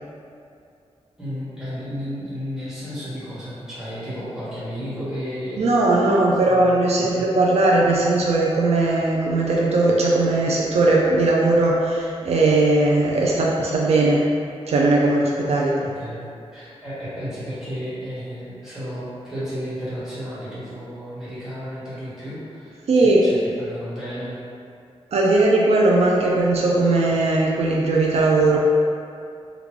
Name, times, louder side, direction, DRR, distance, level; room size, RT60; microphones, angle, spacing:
voice 1, 1.2-6.1 6.4-7.3 15.8-16.2 16.5-24.4, equal, 5° right, -12 dB, 1.4 m, -33 dB
voice 2, 5.6-14.3 14.7-15.8 22.9-23.2 25.1-28.6, right 2 dB, 70° right, -3 dB, 0.4 m, -18 dB
3.6 x 2.3 x 3.2 m, 2.5 s
wide cardioid pair, 130°, 11 cm